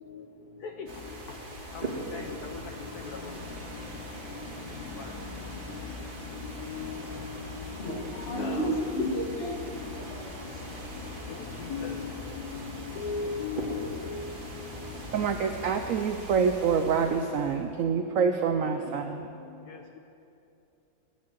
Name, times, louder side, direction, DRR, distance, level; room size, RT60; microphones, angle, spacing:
sound 1, 0.9-17.7, right 1 dB, 30° right, 1.7 m, -41 dB
voice 1, 1.7-2.3 6.7-7.3 8.4-8.6 11.7-12.1 12.5-12.7 13.0-14.2, left 5 dB, 65° left, 4 dB, 1.1 m, -36 dB
sound 2, 1.9-16.0, left 5 dB, 85° left, 1.7 m, -45 dB
voice 2, 7.8-10.5, equal, 35° left, -1 dB, 1.8 m, -32 dB
voice 3, 15.1-19.3, right 6 dB, 80° right, 6 dB, 0.7 m, -26 dB
10.5 x 10.0 x 7.4 m, 2.7 s
omnidirectional pair, 2.1 m